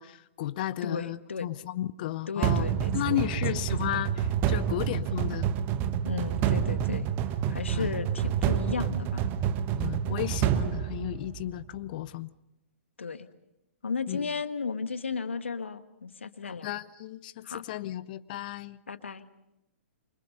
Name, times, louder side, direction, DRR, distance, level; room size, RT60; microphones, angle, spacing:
voice 1, 0.0-5.5 7.7-7.9 9.8-12.3 14.1-14.3 16.4-18.8, left 14 dB, 45° left, 17 dB, 0.8 m, -34 dB
voice 2, 0.8-1.5 2.3-3.4 6.0-7.1 7.5-9.3 13.0-13.3 13.8-16.7 17.4-17.6 18.9-19.2, left 5 dB, 75° left, 11 dB, 1.5 m, -34 dB
sound 1, 2.4-11.6, right 9 dB, 30° right, 1.3 m, -28 dB
28.0 x 25.0 x 5.5 m, 0.89 s
figure-of-eight pair, 115°, 7 cm